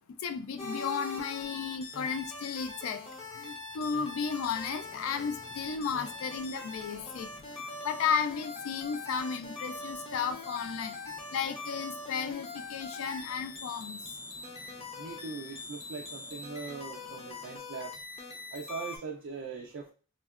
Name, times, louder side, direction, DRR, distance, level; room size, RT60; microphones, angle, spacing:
voice 1, 0.2-3.1 3.3-7.3 7.6-14.0, left 6 dB, 90° left, 0.3 m, -34 dB
sound 1, 0.6-19.0, left 3 dB, 30° left, 0.5 m, -43 dB
sound 2, 4.3-17.6, equal, 70° left, 0.8 m, -57 dB
voice 2, 15.0-17.9 18.5-19.9, right 5 dB, 65° right, 0.3 m, -41 dB
3.6 x 2.1 x 2.3 m
head